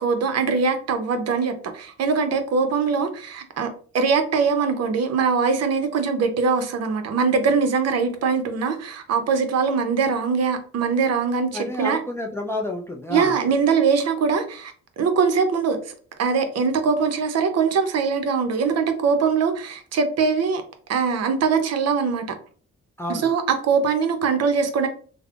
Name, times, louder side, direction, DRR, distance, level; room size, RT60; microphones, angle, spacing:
voice 1, 0.0-3.7 3.9-12.0 13.1-15.9 16.2-20.6 20.9-22.3 23.1-24.9, right 5 dB, 55° right, 0.6 m, -22 dB
voice 2, 11.5-13.4 23.0-23.3, left 1 dB, 10° left, 0.3 m, -29 dB
3.3 x 2.0 x 2.3 m
cardioid pair, 90°, 30 cm